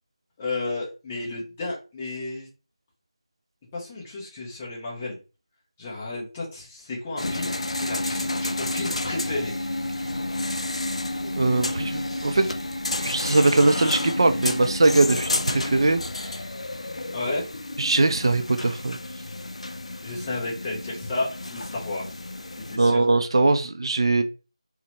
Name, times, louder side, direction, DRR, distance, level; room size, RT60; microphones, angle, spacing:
voice 1, 0.4-2.5 3.7-5.2 5.8-9.5 17.1-17.4 20.0-22.1 22.7-23.0, left 2 dB, 15° left, -4 dB, 0.5 m, -32 dB
sound 1, 7.2-22.8, left 2 dB, 75° left, 0.3 m, -30 dB
voice 2, 11.2-12.5 13.0-16.3 17.8-19.0 22.8-24.2, right 2 dB, 50° right, 7 dB, 0.4 m, -21 dB
2.8 x 2.1 x 2.9 m, 0.32 s
figure-of-eight pair, 170°, 3 cm